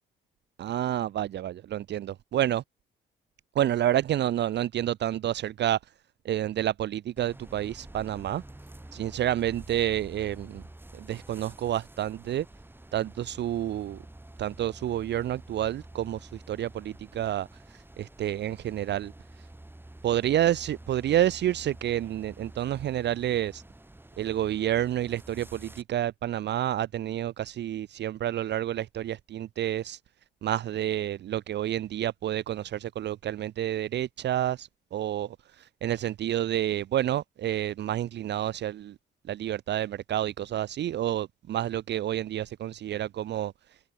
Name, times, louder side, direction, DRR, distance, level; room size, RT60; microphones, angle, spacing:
voice 1, 0.6-2.6 3.6-5.8 6.2-8.4 8.9-10.6 10.9-12.5 12.9-14.0 14.4-19.1 20.0-23.6 24.2-30.0 30.4-38.9 39.3-43.5, right 12 dB, 60° right, 0.7 m, -29 dB
sound 1, 7.2-25.8, right 1 dB, 10° right, 5.1 m, -48 dB
cardioid pair, 90°, 20 cm